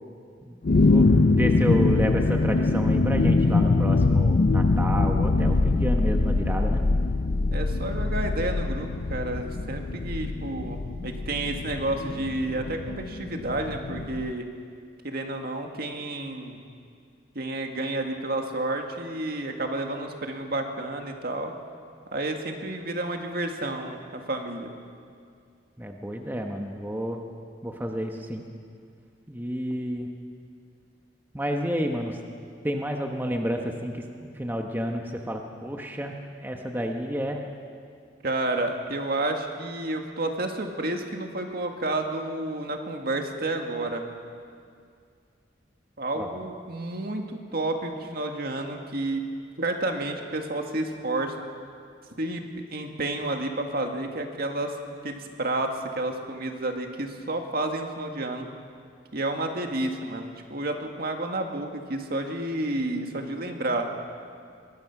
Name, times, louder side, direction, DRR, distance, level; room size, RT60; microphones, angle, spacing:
sound 1, 0.6-14.3, left 3 dB, 55° left, 0.5 m, -23 dB
voice 1, 0.8-6.8 25.8-27.2 27.6-28.4 29.3-30.1 31.3-32.2 32.6-36.2 36.4-37.4 46.2-46.4, equal, 10° right, 2 dB, 1.2 m, -30 dB
voice 2, 7.5-14.4 15.0-16.6 17.4-21.5 22.1-24.7 38.2-44.1 46.0-49.3 49.6-51.5 52.2-52.4 52.7-54.8 55.0-58.5 59.1-63.9, right 2 dB, 55° right, 3 dB, 2.0 m, -30 dB
23.5 x 20.0 x 6.0 m, 2.3 s
head